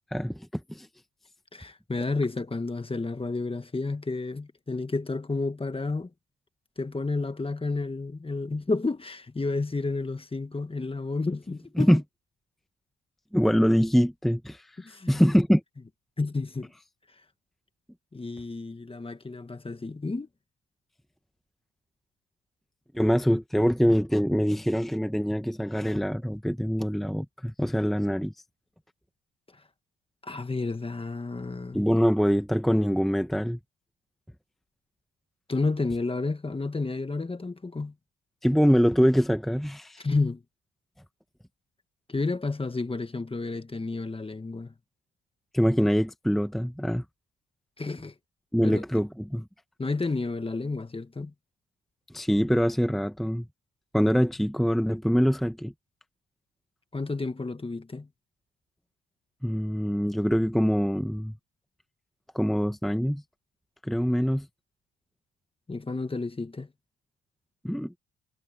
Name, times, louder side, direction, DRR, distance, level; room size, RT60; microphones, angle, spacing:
voice 1, 0.1-0.9 11.8-12.0 13.3-15.6 22.9-28.3 31.7-33.6 38.4-40.0 45.5-47.0 48.5-49.4 52.1-53.5 53.9-55.7 59.4-61.3 62.3-63.2 63.8-64.5 67.6-67.9, equal, ahead, 1.1 m, -24 dB
voice 2, 1.5-6.1 6.8-11.9 14.8-15.2 16.2-16.7 18.1-20.3 30.2-31.8 35.5-37.9 40.0-40.4 42.1-44.7 47.8-48.1 48.6-48.8 49.8-51.3 56.9-58.1 65.7-66.7, left 3 dB, 20° left, 1.4 m, -31 dB
cardioid pair, 90°, 30 cm